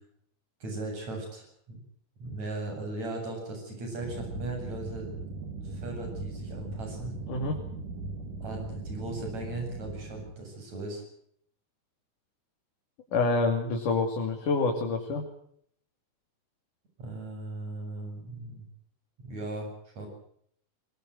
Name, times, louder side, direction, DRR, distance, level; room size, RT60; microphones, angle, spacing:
voice 1, 0.6-1.8 2.2-5.2 5.6-7.1 8.4-11.0 17.0-18.6 19.2-20.1, right 2 dB, 60° right, 3 dB, 9.2 m, -38 dB
sound 1, 4.0-10.3, right 3 dB, 90° right, 4.3 m, -39 dB
voice 2, 13.1-15.2, left 3 dB, 85° left, 2 dB, 4.3 m, -27 dB
23.5 x 20.0 x 7.9 m, 0.66 s
omnidirectional pair, 3.5 m